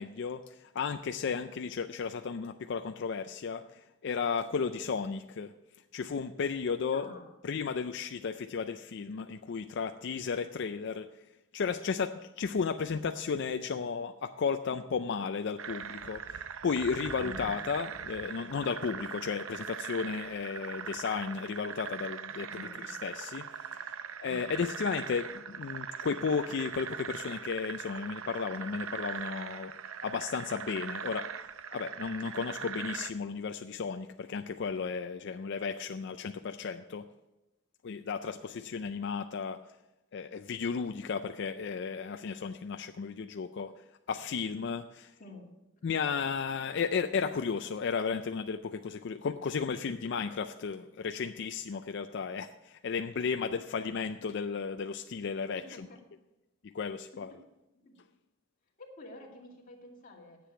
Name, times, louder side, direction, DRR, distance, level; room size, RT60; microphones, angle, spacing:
voice 1, 0.0-5.5 5.9-7.1 7.4-11.1 11.5-22.5 22.9-23.9 24.2-29.7 30.0-31.3 31.7-37.0 37.8-39.6 40.1-43.7 44.1-45.1 45.8-55.9 56.6-57.3, left 5 dB, 60° left, 7 dB, 0.4 m, -34 dB
voice 2, 6.9-7.3 17.2-17.6 22.5-22.9 24.2-24.7 45.2-45.5 55.6-56.0 57.1-57.2 57.8-58.0 59.0-60.4, left 3 dB, 45° left, -2 dB, 2.4 m, -48 dB
sound 1, 15.6-33.1, right 7 dB, 85° right, 0.6 m, -41 dB
10.0 x 7.6 x 6.2 m, 0.95 s
head